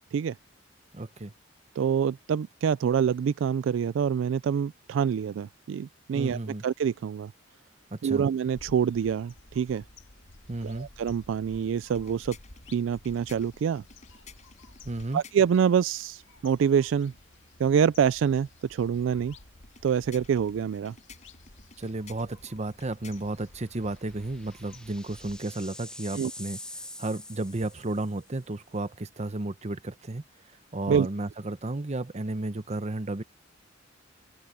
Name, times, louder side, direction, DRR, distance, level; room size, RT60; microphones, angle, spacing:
voice 1, 0.9-1.3 6.1-6.6 7.9-8.2 10.5-10.9 14.8-15.2 21.8-26.6 27.0-30.2 30.7-33.2, right 2 dB, 35° right, 0.9 m, -33 dB
voice 2, 1.8-7.3 8.0-9.8 10.6-12.4 12.7-13.8 15.1-17.1 17.6-19.3 19.8-20.9 26.1-26.3 30.9-31.1, right 7 dB, 75° right, 0.3 m, -26 dB
sound 1, 8.5-25.4, left 2 dB, 75° left, 2.0 m, -53 dB
sound 2, 11.8-15.7 19.6-23.5, left 5 dB, 40° left, 6.4 m, -54 dB
sound 3, 21.6-21.7 22.1-22.2 23.6-28.3, left 1 dB, 5° left, 0.8 m, -45 dB
open air
head